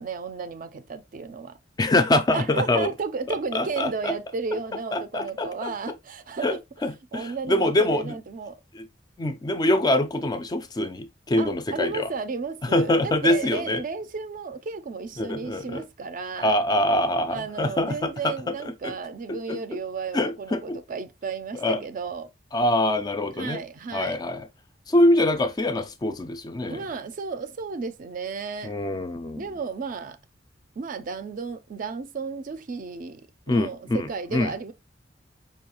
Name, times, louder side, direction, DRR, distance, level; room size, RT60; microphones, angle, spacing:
voice 1, 0.0-1.6 2.3-6.6 7.1-8.6 11.4-16.5 17.3-22.3 23.4-24.2 26.7-28.7 29.3-30.2 30.8-34.7, right 4 dB, 45° right, 0.4 m, -33 dB
voice 2, 1.8-2.9 3.3-4.1 4.9-5.7 6.4-6.6 6.8-8.1 8.7-8.9 9.2-12.1 12.7-13.8 15.2-15.8 16.4-18.3 18.8-18.9 19.3-19.6 20.1-20.8 21.5-21.8 22.5-23.6 23.9-24.5 24.9-26.8 28.6-29.5 33.5-34.5, left 1 dB, 20° left, 0.3 m, -24 dB
5.3 x 2.3 x 2.8 m
head